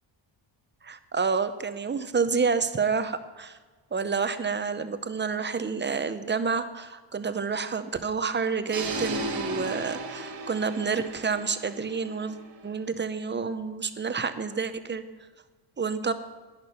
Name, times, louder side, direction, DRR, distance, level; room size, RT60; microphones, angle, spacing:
voice 1, 0.8-3.6 3.9-12.4 12.6-15.0 15.8-16.1, right 5 dB, 25° right, 11 dB, 0.7 m, -29 dB
sound 1, 8.7-12.7, right 2 dB, 50° right, 1.5 m, -35 dB
11.0 x 10.5 x 5.6 m, 1.4 s
cardioid pair, 135°, 47 cm